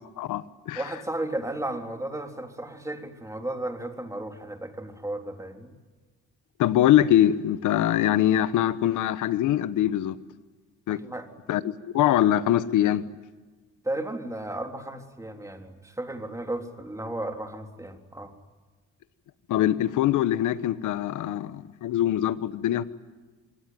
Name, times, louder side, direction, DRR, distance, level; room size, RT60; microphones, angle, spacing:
voice 1, 0.2-0.8 6.6-10.1 10.9-11.0 11.5-13.0 19.5-22.8, left 12 dB, 85° left, 14 dB, 1.1 m, -23 dB
voice 2, 0.8-5.7 10.9-11.3 13.8-18.3, right 1 dB, 10° right, 4 dB, 3.7 m, -34 dB
26.5 x 21.0 x 9.4 m, 1.3 s
cardioid pair, 90°, 30 cm